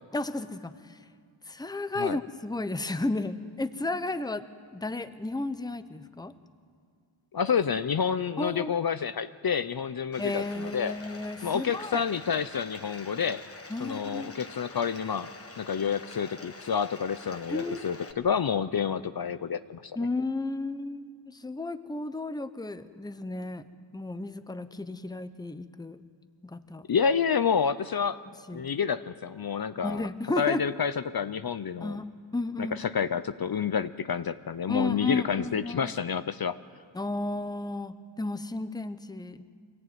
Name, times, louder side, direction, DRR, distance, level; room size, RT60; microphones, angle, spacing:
voice 1, 0.1-1.0 1.5-4.5 4.7-6.3 8.4-8.7 10.2-12.0 13.7-14.3 17.5-17.9 20.0-23.7 23.9-26.0 26.4-26.9 28.5-28.7 29.8-30.6 31.8-32.8 34.7-35.9 36.9-39.4, left 2 dB, 10° left, 12 dB, 0.7 m, -33 dB
voice 2, 7.3-10.9 11.4-13.4 13.8-15.3 15.6-19.9 26.9-28.2 28.5-30.1 30.4-32.0 32.6-36.6, left 7 dB, 50° left, 13 dB, 0.6 m, -29 dB
Bathtub (filling or washing), 10.1-18.1, left 2 dB, 30° left, 1.4 m, -46 dB
24.5 x 17.0 x 9.4 m, 2.2 s
wide cardioid pair, 125°, 47 cm